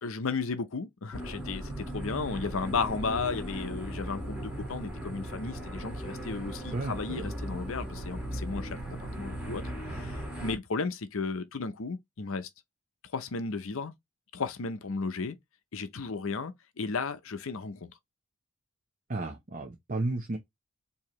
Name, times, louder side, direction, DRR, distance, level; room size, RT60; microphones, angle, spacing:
voice 1, 0.0-9.6 9.9-12.5 13.1-13.9 14.3-15.4 15.7-17.9, left 4 dB, 65° left, 0.6 m, -34 dB
sound 1, 1.1-10.6, right 1 dB, 5° right, 1.6 m, -37 dB
voice 2, 6.7-7.3 19.1-20.4, right 2 dB, 35° right, 0.7 m, -33 dB
4.7 x 2.8 x 3.0 m
head